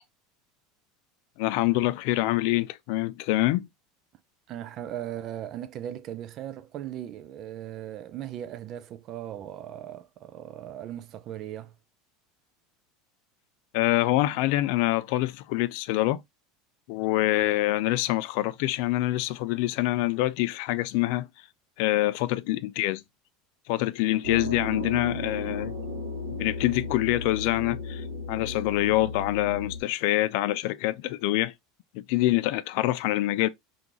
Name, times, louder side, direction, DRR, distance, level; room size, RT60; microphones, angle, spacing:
voice 1, 1.4-3.7 13.7-16.2 16.9-21.3 21.8-23.0 23.7-25.7 26.3-31.5 31.9-33.5, left 17 dB, 55° left, 0.3 m, -25 dB
voice 2, 4.5-11.8, right 11 dB, 35° right, 0.3 m, -38 dB
sound 1, 24.2-29.8, left 2 dB, 55° right, 1.0 m, -35 dB
3.7 x 2.5 x 2.9 m
supercardioid pair, 165°, 0 cm